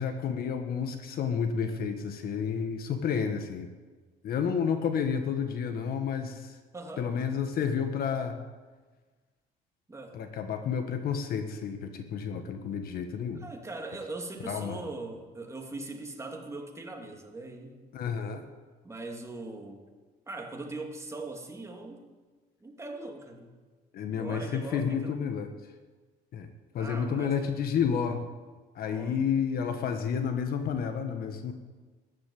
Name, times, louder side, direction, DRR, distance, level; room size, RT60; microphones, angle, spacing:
voice 1, 0.0-3.7 4.2-6.6 7.0-8.4 10.1-13.4 14.4-14.8 17.9-18.4 23.9-25.5 26.3-26.5 26.7-28.2 28.7-31.5, left 7 dB, 60° left, 7 dB, 1.4 m, -30 dB
voice 2, 6.7-7.1 9.9-10.2 13.4-17.8 18.8-19.9 20.3-22.1 22.6-23.6 24.1-25.2 26.8-27.3 28.8-29.2, right 2 dB, 15° right, 2 dB, 2.6 m, -40 dB
13.5 x 11.0 x 8.4 m, 1.4 s
cardioid pair, 110°, 17 cm